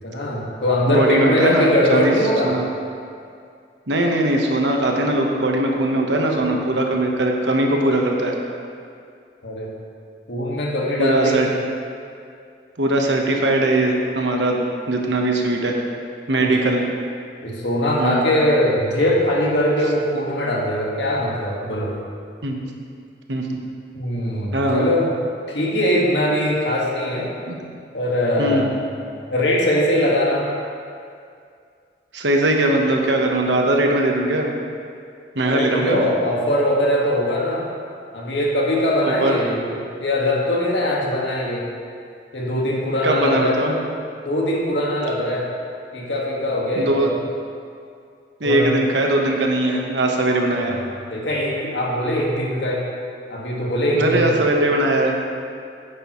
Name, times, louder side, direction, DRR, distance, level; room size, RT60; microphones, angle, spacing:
voice 1, 0.0-2.6 9.4-9.7 10.3-11.6 16.4-16.7 17.4-22.0 23.9-25.1 25.5-27.3 27.9-28.8 29.3-30.5 35.4-37.7 38.1-41.7 42.3-43.6 44.2-45.5 45.9-47.1 48.4-48.7 50.6-52.9 53.3-54.4, left 1 dB, 85° left, -3 dB, 1.8 m, -21 dB
voice 2, 0.9-2.1 2.4-2.6 3.9-8.4 11.0-11.5 12.8-15.7 16.3-16.8 18.0-18.2 22.4-22.6 23.3-23.4 24.5-24.9 27.5-27.6 28.4-28.7 32.1-34.5 35.3-36.1 39.0-39.4 43.0-43.7 46.8-47.2 48.4-50.8 53.9-55.1, right 1 dB, 85° right, 1 dB, 1.1 m, -20 dB
10.5 x 9.1 x 3.1 m, 2.3 s
head